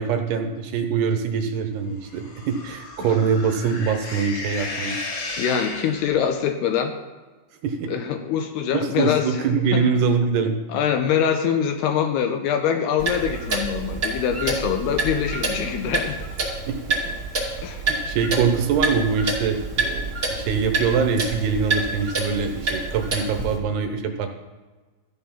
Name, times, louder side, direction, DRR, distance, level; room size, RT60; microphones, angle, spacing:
voice 1, 0.0-5.0 7.6-7.9 8.7-10.6 17.9-24.3, right 6 dB, 75° right, 6 dB, 2.6 m, -23 dB
sound 1, 2.0-6.3, left 2 dB, 55° left, 2.7 m, -34 dB
voice 2, 5.4-6.9 7.9-9.3 9.7-9.8 10.7-16.2 17.6-17.8, left 8 dB, 80° left, 6 dB, 2.6 m, -24 dB
Clock, 13.0-23.6, right 3 dB, 30° right, 1.9 m, -27 dB
13.5 x 9.3 x 5.7 m, 1.3 s
omnidirectional pair, 5.2 m